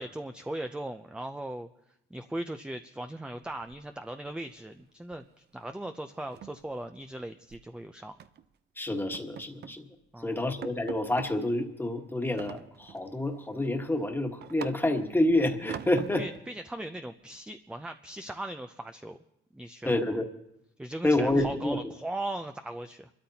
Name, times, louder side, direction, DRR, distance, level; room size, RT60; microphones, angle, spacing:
voice 1, 0.0-1.7 2.1-8.2 10.1-10.5 16.2-19.2 19.5-20.2 20.8-23.1, right 1 dB, 5° right, 7 dB, 0.5 m, -38 dB
sound 1, 3.4-4.3 4.5-4.8 5.1-5.3 5.6-5.7 6.1-7.7 8.2-8.5 8.9-9.8 10.2-10.3 10.6-11.3 12.4-13.1 13.5-15.1 15.7-16.4, right 9 dB, 55° right, 0.6 m, -44 dB
voice 2, 8.8-9.9 10.2-16.2 19.8-20.2 21.0-21.8, left 1 dB, 10° left, 4 dB, 1.5 m, -28 dB
28.0 x 13.0 x 2.8 m, 0.84 s
cardioid pair, 90°, 20 cm